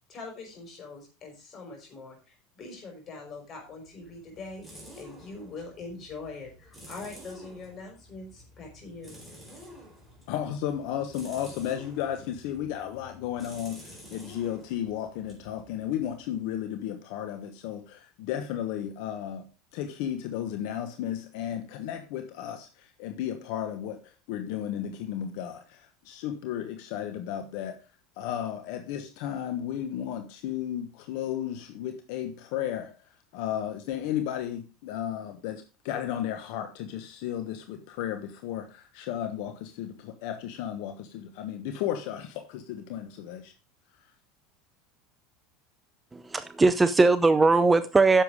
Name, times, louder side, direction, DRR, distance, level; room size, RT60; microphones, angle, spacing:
voice 1, 0.1-4.6 5.0-9.2, left 3 dB, 35° left, 3 dB, 5.4 m, -43 dB
sound 1, 3.7-16.3, equal, 5° left, 4.2 m, -50 dB
voice 2, 10.3-19.4 19.7-27.8 28.2-32.9 33.3-43.5, left 10 dB, 65° left, 7 dB, 1.1 m, -34 dB
voice 3, 46.1-48.2, right 3 dB, 15° right, 12 dB, 0.5 m, -20 dB
10.0 x 7.0 x 4.8 m, 0.32 s
supercardioid pair, 135°, 0 cm